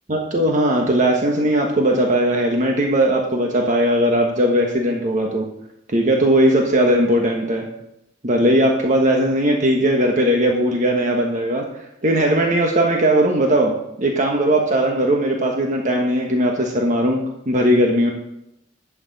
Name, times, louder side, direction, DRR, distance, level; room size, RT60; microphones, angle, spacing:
voice 1, 0.1-5.5 5.9-7.7 8.2-11.6 12.0-13.7 14.0-17.2 17.5-18.1, right 1 dB, 45° right, 1 dB, 1.3 m, -18 dB
11.5 x 8.7 x 4.2 m, 0.81 s
head